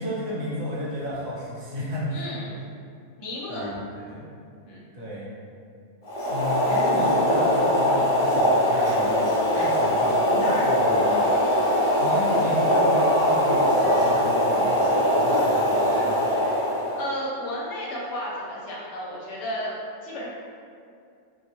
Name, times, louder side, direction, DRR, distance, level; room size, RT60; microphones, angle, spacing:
voice 1, 0.0-2.4 3.5-4.4 4.9-5.3 6.3-9.3 9.5-11.0 12.0-16.3, equal, 65° right, -7 dB, 0.9 m, -33 dB
voice 2, 2.1-2.6 3.2-3.8 4.6-4.8 10.4-11.4 16.9-19.8 20.0-20.3, left 1 dB, 70° left, -5 dB, 0.8 m, -33 dB
Boiling, 6.0-17.0, equal, 45° left, 0.5 m, -21 dB
2.3 x 2.0 x 2.9 m, 2.4 s
omnidirectional pair, 1.3 m